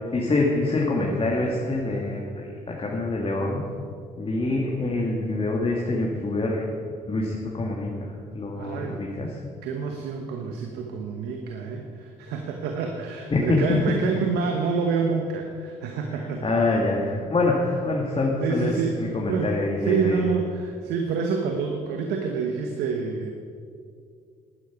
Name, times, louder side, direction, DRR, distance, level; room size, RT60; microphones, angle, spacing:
voice 1, 0.1-3.6 4.2-6.6 7.1-9.3 13.3-13.6 16.4-20.2, left 2 dB, 35° left, -2 dB, 2.0 m, -25 dB
voice 2, 8.5-9.0 9.6-16.4 18.4-19.0 19.3-19.5 19.8-23.3, right 5 dB, 80° right, 3 dB, 1.1 m, -27 dB
11.5 x 10.0 x 6.0 m, 2.3 s
supercardioid pair, 60°, 17 cm